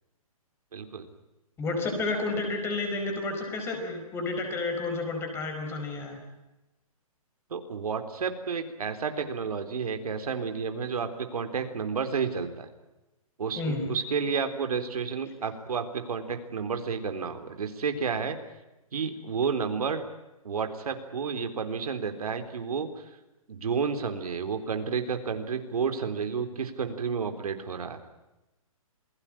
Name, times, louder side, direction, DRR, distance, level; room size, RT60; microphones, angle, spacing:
voice 1, 0.7-1.1 7.5-12.7 13.4-18.4 18.9-20.0 20.4-22.9 23.5-28.0, right 5 dB, 80° right, 7 dB, 3.8 m, -31 dB
voice 2, 1.6-6.2 13.5-13.9, left 3 dB, 15° left, 5 dB, 4.8 m, -31 dB
27.5 x 18.5 x 8.7 m, 0.98 s
hypercardioid pair, 165°, 19 cm